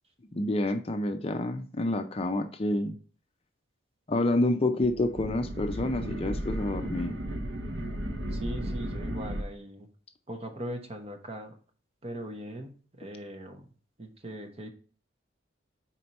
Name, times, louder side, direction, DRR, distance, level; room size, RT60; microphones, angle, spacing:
voice 1, 0.3-2.9 4.1-7.2, left 2 dB, 30° left, 7 dB, 0.5 m, -28 dB
sound 1, 4.8-9.4, right 1 dB, 65° right, 0.8 m, -34 dB
voice 2, 8.3-9.9 10.3-11.5 12.0-13.7 14.0-14.7, right 1 dB, 30° right, 4 dB, 0.9 m, -40 dB
4.5 x 4.3 x 5.3 m, 0.40 s
head